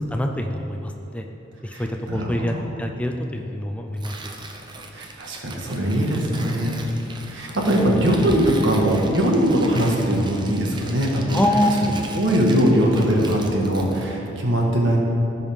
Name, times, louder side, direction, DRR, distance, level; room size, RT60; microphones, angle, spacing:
voice 1, 0.1-1.2 1.6-4.3 11.3-11.7, left 1 dB, 5° left, 3 dB, 0.4 m, -25 dB
voice 2, 1.7-2.6 4.9-6.8 7.3-11.4 11.8-15.0, equal, 70° right, -1 dB, 1.6 m, -21 dB
Tearing, 4.0-14.1, right 2 dB, 25° right, 0.7 m, -39 dB
16.5 x 5.6 x 3.6 m, 2.9 s
head